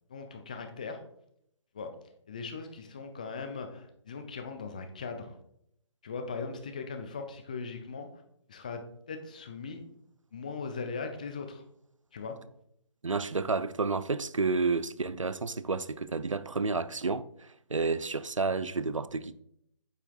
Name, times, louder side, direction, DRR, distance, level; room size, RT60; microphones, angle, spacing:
voice 1, 0.1-1.0 1.7-1.9 2.3-5.4 6.0-8.1 8.5-9.8 10.3-11.6 12.1-12.4, left 4 dB, 15° left, 0.3 m, -39 dB
voice 2, 13.0-19.4, right 4 dB, 90° right, 0.4 m, -30 dB
8.4 x 5.6 x 2.3 m
figure-of-eight pair, 145°, 16 cm